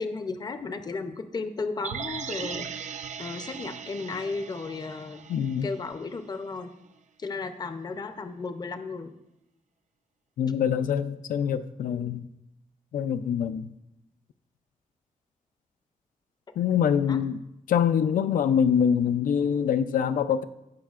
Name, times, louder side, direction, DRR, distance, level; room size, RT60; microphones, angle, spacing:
voice 1, 0.0-5.2 5.6-6.7 7.2-9.1 17.1-17.2, left 4 dB, 30° left, 0.5 m, -34 dB
sound 1, 1.8-6.0 6.3-6.4, right 7 dB, 60° right, 0.5 m, -38 dB
voice 2, 5.3-5.7 10.4-12.2 12.9-13.7 16.6-17.4 17.7-20.4, left 8 dB, 85° left, 0.4 m, -24 dB
16.0 x 5.6 x 2.4 m
wide cardioid pair, 165°, 14 cm